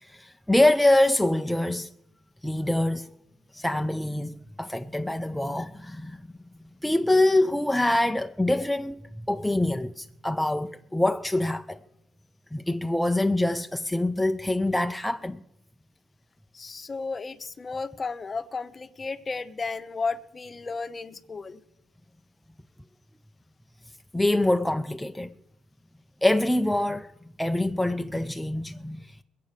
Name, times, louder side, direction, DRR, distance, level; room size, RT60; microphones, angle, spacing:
voice 1, 0.0-1.9 2.4-3.1 3.5-6.2 6.8-11.8 12.5-15.4 24.1-25.3 26.2-27.1 27.4-29.2, left 1 dB, 5° left, 0.5 m, -25 dB
voice 2, 16.5-21.6, left 4 dB, 30° left, 0.8 m, -33 dB
21.0 x 8.4 x 6.6 m
cardioid pair, 95°, 0 cm